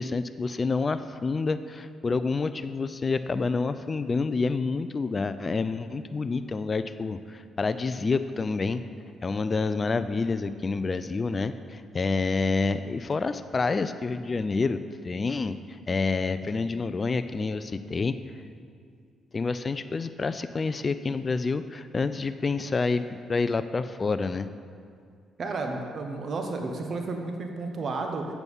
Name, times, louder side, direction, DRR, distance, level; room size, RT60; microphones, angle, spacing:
voice 1, 0.0-8.8 9.2-14.8 15.0-15.6 15.9-18.1 19.3-23.0 23.3-24.5, left 4 dB, 30° left, 11 dB, 0.3 m, -28 dB
voice 2, 25.4-28.3, right 3 dB, 50° right, 4 dB, 0.9 m, -32 dB
8.1 x 7.0 x 5.4 m, 2.2 s
cardioid pair, 90°, 0 cm